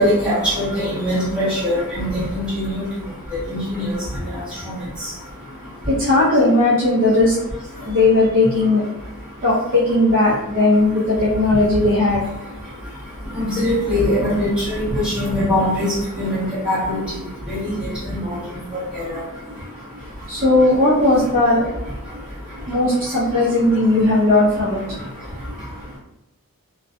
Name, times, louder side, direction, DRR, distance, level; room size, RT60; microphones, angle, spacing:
voice 1, 0.0-2.8 3.5-3.8 4.6-4.7 13.3-17.0 17.5-17.7 18.0-18.3 19.1-19.2, left 1 dB, 5° right, -11 dB, 1.1 m, -21 dB
voice 2, 5.9-7.4 7.8-8.9 9.4-12.2 20.3-21.7 22.6-25.0, left 2 dB, 40° right, -9 dB, 0.6 m, -17 dB
2.5 x 2.3 x 2.2 m, 0.91 s
head